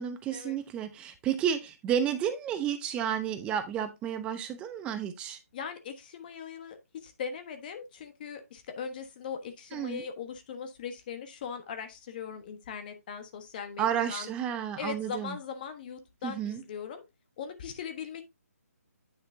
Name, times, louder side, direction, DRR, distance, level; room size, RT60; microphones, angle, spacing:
voice 1, 0.0-5.4 9.7-10.0 13.8-15.4 16.2-16.6, right 9 dB, 10° right, 0.6 m, -31 dB
voice 2, 5.5-14.3 14.8-17.0 17.4-18.2, left 7 dB, 35° left, 1.3 m, -40 dB
9.5 x 5.9 x 2.7 m
figure-of-eight pair, 155°, 9 cm